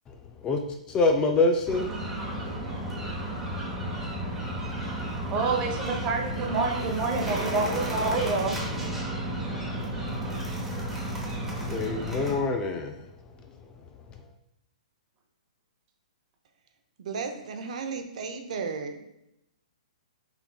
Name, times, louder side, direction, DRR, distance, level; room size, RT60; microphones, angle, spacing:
voice 1, 0.1-0.6 0.9-2.6 11.6-13.2 13.4-14.3, left 3 dB, 15° left, 5 dB, 0.3 m, -27 dB
sound 1, 1.7-12.4, right 1 dB, 5° right, 0.9 m, -32 dB
voice 2, 5.3-8.6, right 4 dB, 25° right, 2 dB, 0.7 m, -28 dB
voice 3, 17.0-19.1, right 5 dB, 60° right, 6 dB, 0.7 m, -34 dB
5.8 x 3.5 x 2.3 m, 0.82 s
hypercardioid pair, 150°, 4 cm